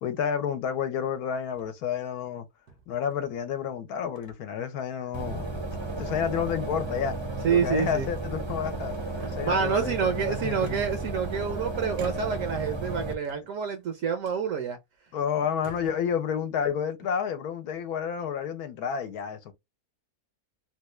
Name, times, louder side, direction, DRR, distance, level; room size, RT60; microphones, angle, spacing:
voice 1, 0.0-2.5 2.9-5.5 6.0-7.2 7.4-8.9 9.3-10.8 15.1-19.5, left 8 dB, 80° left, 1.1 m, -30 dB
sound 1, 1.4-1.9 2.7-3.4 4.2-4.4 4.8-4.9 5.4-5.8 6.1-6.8 7.8-8.5 8.9-9.7 10.6-11.5 11.9-12.6 13.2-13.8 14.2-14.4 15.1-15.2 15.5-16.0, right 3 dB, 85° right, 1.4 m, -49 dB
sound 2, 5.1-13.1, right 2 dB, 30° right, 0.5 m, -33 dB
voice 2, 7.4-8.1 9.2-14.8, right 6 dB, 70° right, 0.9 m, -28 dB
3.2 x 2.3 x 3.0 m
omnidirectional pair, 1.6 m